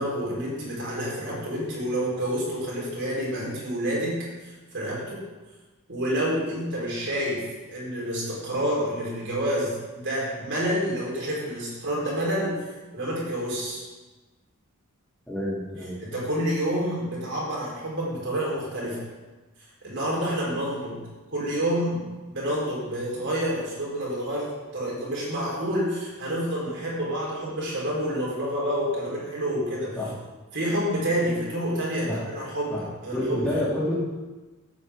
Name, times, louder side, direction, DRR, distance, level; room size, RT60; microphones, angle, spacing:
voice 1, 0.0-5.2 5.9-12.6 12.9-13.9 16.0-19.1 19.8-30.0 30.5-33.4, equal, 55° right, -5 dB, 4.3 m, -28 dB
voice 2, 15.3-16.0 30.0-30.1 32.1-32.2 32.7-32.8 33.1-33.9, left 1 dB, 5° left, -8 dB, 2.9 m, -28 dB
14.5 x 8.4 x 3.8 m, 1.2 s
head